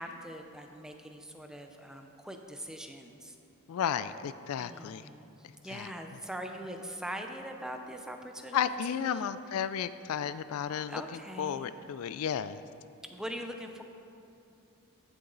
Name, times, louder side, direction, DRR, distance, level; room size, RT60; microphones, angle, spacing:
voice 1, 0.0-3.4 4.6-5.3 5.6-9.3 10.9-11.7 13.0-13.8, equal, 5° right, 4 dB, 0.6 m, -42 dB
voice 2, 3.7-5.1 5.7-5.9 8.5-11.0 11.4-12.6, left 8 dB, 70° left, 14 dB, 0.3 m, -33 dB
14.5 x 6.9 x 3.9 m, 2.6 s
head